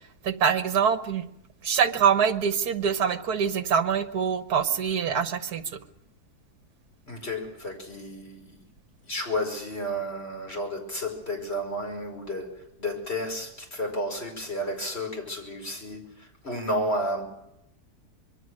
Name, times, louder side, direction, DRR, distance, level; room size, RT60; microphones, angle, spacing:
voice 1, 0.2-1.2 1.6-5.8, right 7 dB, 70° right, 11 dB, 1.7 m, -24 dB
voice 2, 7.1-8.6 9.0-12.5 12.8-17.2, equal, 40° left, 2 dB, 5.6 m, -32 dB
25.5 x 22.5 x 6.6 m, 0.81 s
omnidirectional pair, 1.7 m